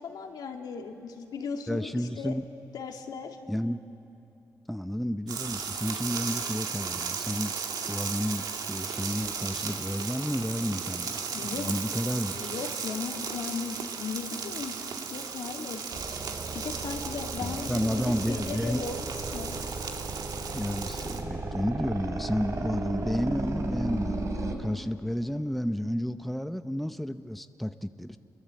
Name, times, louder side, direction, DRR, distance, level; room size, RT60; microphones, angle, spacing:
voice 1, 0.0-2.4 2.7-3.4 11.3-11.6 12.3-14.8 15.1-15.8 16.5-19.1 19.3-19.6, left 5 dB, 80° left, 3 dB, 2.2 m, -37 dB
voice 2, 1.7-2.4 3.5-3.8 4.7-7.6 7.9-12.5 17.4-18.8 20.5-28.2, equal, ahead, 9 dB, 0.7 m, -31 dB
sound 1, 5.3-21.2, right 6 dB, 75° right, 1.9 m, -35 dB
sound 2, 15.9-24.5, right 2 dB, 50° right, 3.1 m, -35 dB
29.5 x 22.0 x 7.6 m, 2.8 s
cardioid pair, 110°, 7 cm